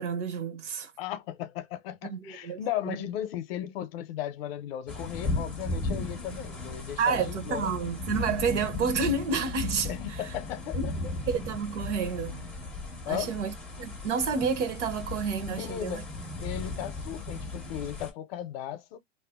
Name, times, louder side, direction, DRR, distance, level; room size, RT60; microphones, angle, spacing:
voice 1, 0.0-0.9 2.0-2.6 2.8-3.0 7.0-10.3 10.7-10.9 11.3-12.5 13.1-16.0, right 5 dB, 70° right, 0.8 m, -30 dB
voice 2, 1.0-7.7 9.9-11.1 13.1-13.3 15.5-16.1 16.4-19.0, left 11 dB, 50° left, 0.6 m, -36 dB
sound 1, 4.9-18.1, left 2 dB, 5° left, 0.5 m, -36 dB
2.5 x 2.0 x 3.4 m
hypercardioid pair, 125°, 37 cm